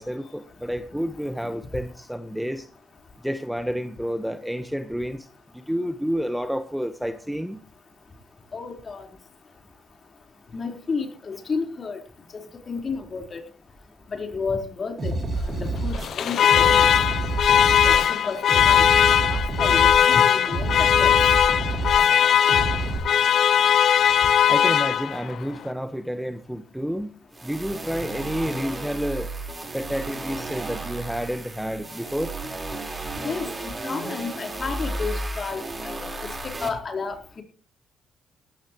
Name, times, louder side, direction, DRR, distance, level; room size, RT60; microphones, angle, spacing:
voice 1, 0.0-2.7 3.2-5.3 5.5-7.6 24.5-27.1 27.4-29.3 29.7-32.3, equal, ahead, 9 dB, 1.3 m, -29 dB
voice 2, 8.5-9.1 10.5-12.0 12.3-13.4 14.1-16.9 17.8-18.9 19.3-21.1 33.2-37.4, left 4 dB, 40° left, 4 dB, 4.4 m, -32 dB
sound 1, 15.0-23.0, right 2 dB, 40° right, 7.3 m, -29 dB
Alarm, 15.9-25.4, left 9 dB, 65° left, 0.6 m, -19 dB
sound 2, 27.3-36.7, right 2 dB, 25° right, 4.5 m, -33 dB
18.5 x 14.5 x 3.1 m, 0.35 s
cardioid pair, 90°, 0 cm